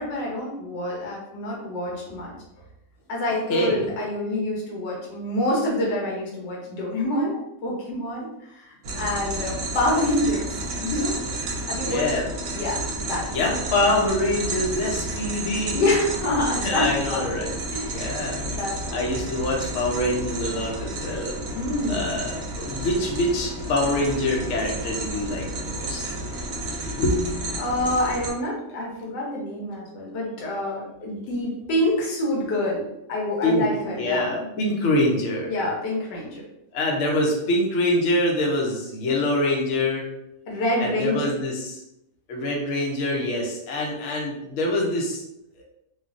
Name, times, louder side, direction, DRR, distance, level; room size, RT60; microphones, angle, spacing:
voice 1, 0.0-2.3 3.1-10.5 10.8-11.2 11.7-12.1 12.5-13.3 15.7-17.2 17.7-18.1 18.4-19.0 21.5-22.1 27.6-34.5 35.5-36.4 40.5-41.2, left 1 dB, 85° left, -3 dB, 1.5 m, -27 dB
voice 2, 3.3-3.9 11.9-12.3 13.3-15.8 16.6-17.6 17.9-18.5 18.9-21.4 21.9-26.0 26.8-27.6 33.4-33.7 34.0-35.6 36.7-40.1 40.8-41.8 42.3-45.2 45.6-45.7, left 1 dB, 60° left, -1 dB, 0.8 m, -25 dB
sound 1, 8.8-28.3, right 2 dB, 70° right, 1.0 m, -31 dB
3.1 x 2.3 x 2.4 m, 0.83 s
omnidirectional pair, 1.8 m